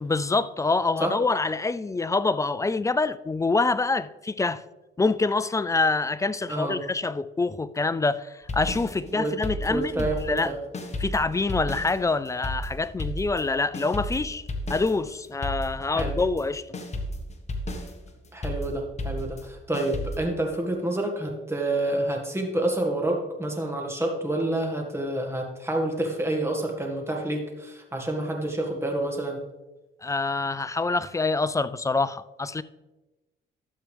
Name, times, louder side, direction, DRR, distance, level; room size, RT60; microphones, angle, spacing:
voice 1, 0.0-4.6 5.0-10.5 11.0-14.4 14.7-16.8 30.0-32.6, left 3 dB, 15° left, 0.3 m, -26 dB
voice 2, 6.5-6.8 9.1-9.3 9.7-10.6 15.9-16.1 18.3-29.4, right 1 dB, 15° right, 1.8 m, -28 dB
sound 1, 8.5-10.5 10.7-16.5 16.7-20.2, left 1 dB, 35° left, 1.4 m, -33 dB
12.0 x 7.6 x 3.4 m
cardioid pair, 90°, 20 cm